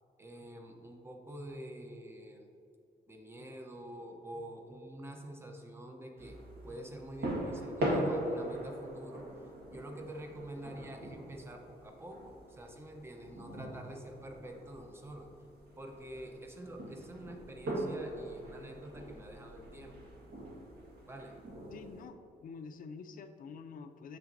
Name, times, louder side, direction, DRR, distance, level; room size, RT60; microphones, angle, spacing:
voice 1, 0.2-2.5 3.1-6.4 6.6-15.3 15.8-20.1 21.1-21.3, right 1 dB, 15° right, 3 dB, 0.6 m, -47 dB
sound 1, 6.2-22.0, right 1 dB, 75° right, 1.5 m, -41 dB
voice 2, 21.7-24.2, left 5 dB, 55° left, 9 dB, 0.4 m, -47 dB
7.3 x 5.8 x 2.6 m, 2.6 s
wide cardioid pair, 160°, 17 cm